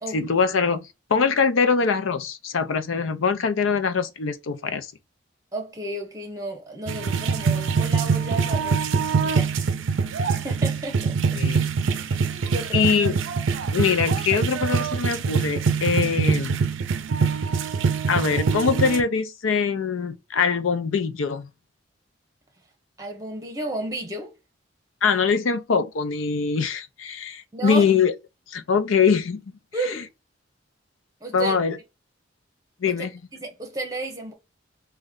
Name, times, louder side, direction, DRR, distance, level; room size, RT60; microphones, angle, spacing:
voice 1, 0.1-4.9 11.3-11.7 12.7-13.2 13.7-16.6 18.1-21.5 25.0-28.1 28.5-29.4 29.8-30.0 31.3-31.8 32.8-33.1, left 5 dB, 90° left, 0.5 m, -23 dB
voice 2, 5.5-8.9 9.2-9.5 10.3-11.4 12.0-12.9 23.0-24.3 27.5-27.9 29.7-30.1 31.2-31.6 32.9-33.1 33.3-34.3, right 2 dB, 20° right, 0.9 m, -33 dB
sound 1, 6.9-19.0, right 5 dB, 80° right, 0.4 m, -24 dB
3.1 x 2.3 x 3.6 m
head